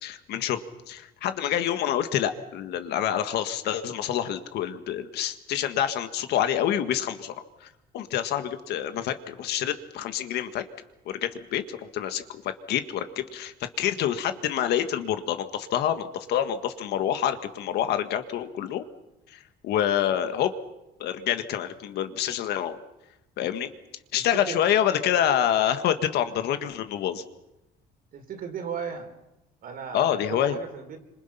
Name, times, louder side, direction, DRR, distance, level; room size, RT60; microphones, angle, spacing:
voice 1, 0.0-0.6 0.9-7.3 7.6-7.7 7.9-10.6 11.1-18.9 19.3-20.5 21.0-22.8 23.4-23.7 24.1-27.2 29.9-30.6, left 10 dB, 75° left, 9 dB, 1.8 m, -27 dB
voice 2, 28.1-29.1 29.6-31.0, right 7 dB, 60° right, 5 dB, 4.1 m, -36 dB
26.5 x 26.0 x 5.9 m, 0.92 s
cardioid pair, 110°, 17 cm